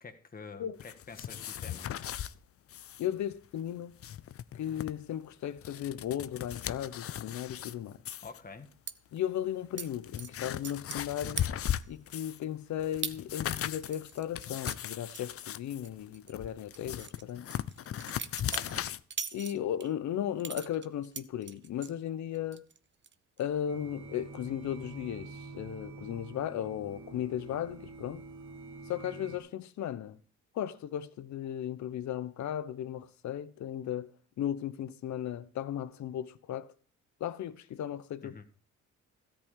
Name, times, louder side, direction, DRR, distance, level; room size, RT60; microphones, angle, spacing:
voice 1, 0.0-1.9 8.2-8.7 18.4-18.9 38.2-38.4, left 4 dB, 30° left, 1.6 m, -47 dB
sound 1, 0.8-2.3 2.7-3.1 3.3-3.4 3.8-4.9 5.4-7.7 8.1-8.4 9.2-9.3 9.8-12.4 12.8-19.0, left 11 dB, 50° left, 0.6 m, -38 dB
voice 2, 3.0-3.9 4.5-8.0 9.1-11.5 11.9-17.5 19.3-22.7 23.4-28.2 28.9-30.2 30.5-34.1 34.4-36.7 37.2-38.4, left 10 dB, 70° left, 0.9 m, -36 dB
sound 2, 8.9-9.0 9.8-9.9 10.2-11.1 11.4-11.9 12.3-12.4 13.0-13.2 13.5-15.9 16.1-16.3 16.7-19.9 20.4-21.9 22.3-22.8 23.0-23.4, right 7 dB, 40° right, 0.9 m, -41 dB
sound 3, 23.7-29.4, right 3 dB, 75° right, 3.0 m, -47 dB
13.5 x 5.1 x 9.1 m
cardioid pair, 90°, 30 cm